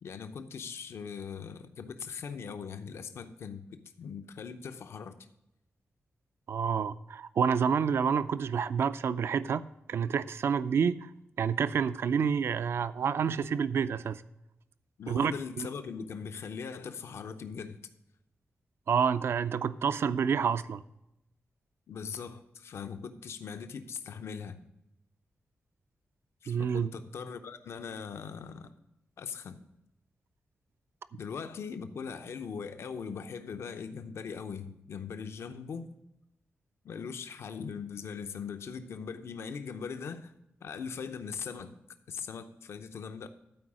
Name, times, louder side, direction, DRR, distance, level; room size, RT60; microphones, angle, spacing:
voice 1, 0.0-5.3 15.0-17.8 21.9-24.6 26.4-28.7 29.2-29.6 31.1-35.9 36.8-40.3 40.6-41.8 42.1-43.3, left 6 dB, 75° left, 9 dB, 0.7 m, -40 dB
voice 2, 6.5-9.6 9.9-11.1 11.4-14.2 15.1-15.3 15.6-15.7 18.9-20.8 26.5-26.9, right 6 dB, 65° right, 15 dB, 0.4 m, -28 dB
12.0 x 4.8 x 6.2 m, 0.86 s
wide cardioid pair, 150°, 4 cm